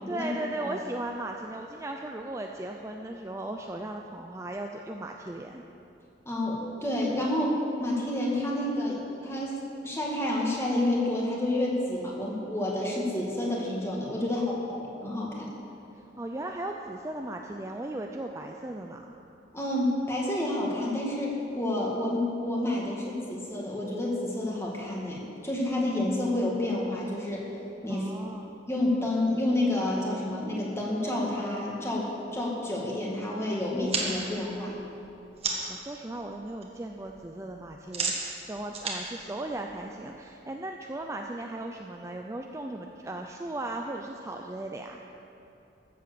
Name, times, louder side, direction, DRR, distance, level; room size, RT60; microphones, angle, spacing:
voice 1, 0.1-5.6 14.2-14.6 16.2-19.0 27.9-28.5 35.7-45.0, right 2 dB, 15° right, 2 dB, 0.4 m, -37 dB
voice 2, 6.3-15.5 19.5-27.4 27.8-28.1 28.7-34.7, left 1 dB, 15° left, -3 dB, 2.0 m, -29 dB
sound 1, 33.7-35.8 36.2-36.7 36.9-40.2, right 4 dB, 35° right, 1.6 m, -34 dB
13.5 x 7.7 x 6.9 m, 2.8 s
head